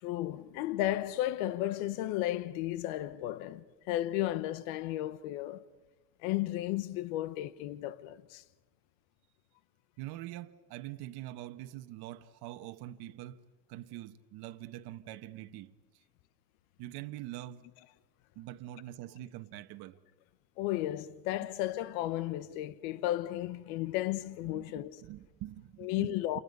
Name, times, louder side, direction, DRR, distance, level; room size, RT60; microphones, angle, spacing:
voice 1, 0.0-5.7 6.2-8.4 20.6-25.0 25.8-26.4, left 14 dB, 85° left, 1.1 m, -34 dB
voice 2, 10.0-13.4 13.7-15.8 16.8-17.6 18.3-20.0 21.4-21.8 24.4-26.4, right 14 dB, 65° right, 1.4 m, -44 dB
29.0 x 29.0 x 5.5 m
supercardioid pair, 110°, 41 cm